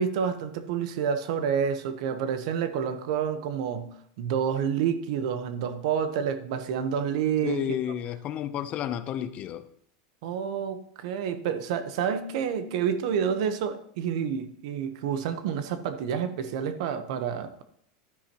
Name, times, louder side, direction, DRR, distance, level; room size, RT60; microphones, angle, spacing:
voice 1, 0.0-3.9 4.2-7.6 10.2-17.6, right 7 dB, 70° right, 10 dB, 1.0 m, -29 dB
voice 2, 7.4-9.7, left 10 dB, 40° left, 12 dB, 0.7 m, -31 dB
12.0 x 10.0 x 3.0 m, 0.66 s
supercardioid pair, 140°, 4 cm